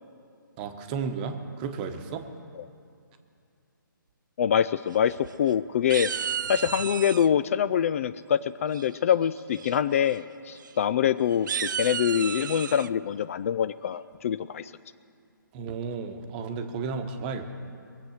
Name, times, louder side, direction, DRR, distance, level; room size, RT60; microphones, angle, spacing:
voice 1, 0.6-2.3 15.5-17.5, right 5 dB, 25° right, 7 dB, 1.1 m, -33 dB
voice 2, 4.4-6.1 6.5-14.7, left 9 dB, 40° left, 14 dB, 0.4 m, -25 dB
sound 1, 4.9-5.5 5.9-7.3 8.7-9.1 9.5-9.8 10.0-10.2 10.6-10.7 11.3-12.9, right 7 dB, 65° right, 0.4 m, -33 dB
23.0 x 8.0 x 6.5 m, 2.5 s
hypercardioid pair, 145°, 11 cm